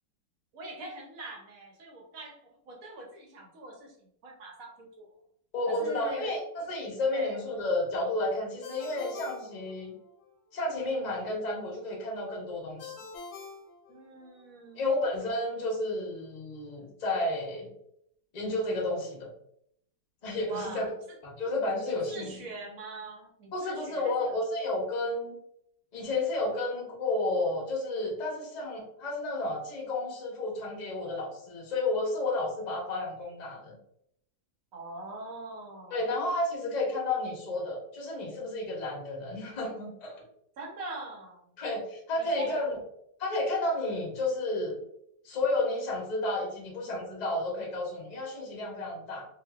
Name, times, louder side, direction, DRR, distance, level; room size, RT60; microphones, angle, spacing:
voice 1, 0.5-2.4 2.7-5.1 5.7-6.3 7.1-7.4 13.9-14.8 20.5-20.9 21.8-24.4 34.7-36.0 40.6-41.4 42.2-42.6, right 2 dB, 60° right, 0 dB, 1.0 m, -42 dB
voice 2, 5.5-10.0 10.5-12.9 14.8-17.7 18.3-19.3 20.2-20.8 21.2-22.4 23.5-25.4 25.9-33.8 35.9-40.2 41.6-42.8 43.2-44.8 45.2-49.3, left 2 dB, 40° left, -2 dB, 0.6 m, -31 dB
Ringtone, 8.6-10.3 12.8-14.5, left 5 dB, 70° left, 1.1 m, -45 dB
3.3 x 2.6 x 2.4 m, 0.72 s
omnidirectional pair, 2.0 m